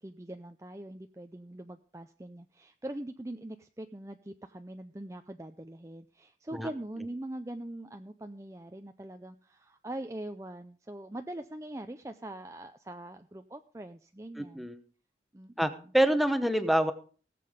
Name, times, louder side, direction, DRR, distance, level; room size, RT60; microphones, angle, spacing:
voice 1, 0.0-14.7 15.3-15.9, right 1 dB, 15° right, 7 dB, 0.5 m, -42 dB
voice 2, 14.4-14.8 15.6-16.9, right 1 dB, ahead, 9 dB, 0.9 m, -26 dB
18.0 x 7.7 x 5.0 m, 0.40 s
head